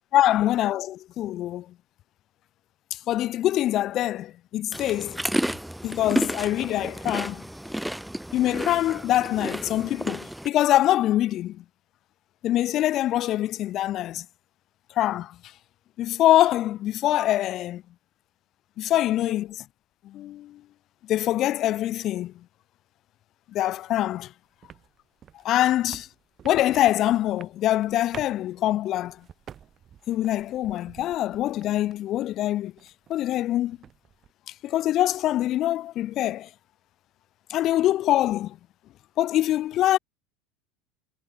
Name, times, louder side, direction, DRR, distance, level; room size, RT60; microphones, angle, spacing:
voice 1, 0.0-1.7 2.9-5.2 5.8-7.4 8.3-11.6 12.4-14.3 15.0-15.4 16.0-17.8 18.8-19.6 20.0-20.6 21.0-22.3 23.5-24.3 25.4-26.1 26.4-29.2 30.1-32.7 33.1-33.8 34.5-36.5 37.5-38.6 39.2-40.0, left 13 dB, 50° left, 0.4 m, -24 dB
sound 1, 4.7-10.5, right 1 dB, 5° right, 0.7 m, -31 dB
sound 2, 24.6-32.2 32.5-33.4 33.6-34.3, right 9 dB, 40° right, 1.7 m, -48 dB
supercardioid pair, 95°, 0 cm